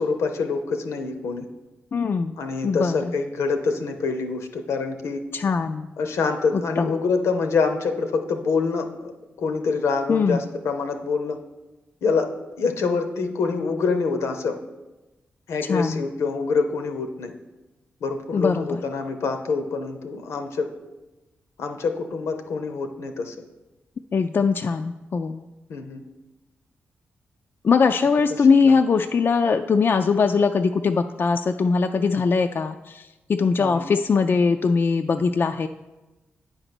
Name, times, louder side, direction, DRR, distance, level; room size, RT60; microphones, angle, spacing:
voice 1, 0.0-1.4 2.4-5.2 6.0-9.1 9.4-11.4 12.0-12.3 12.6-14.6 15.5-17.3 18.0-20.7 21.6-23.3 25.7-26.0 28.4-28.8 33.6-33.8, left 4 dB, 80° left, 6 dB, 0.8 m, -26 dB
voice 2, 1.9-2.3 2.6-3.1 5.3-5.9 6.5-6.9 10.1-10.4 15.7-16.1 18.3-18.8 24.1-25.5 27.6-35.7, left 5 dB, 50° left, 7 dB, 0.3 m, -21 dB
8.8 x 4.0 x 6.0 m, 1.1 s
supercardioid pair, 50°, 5 cm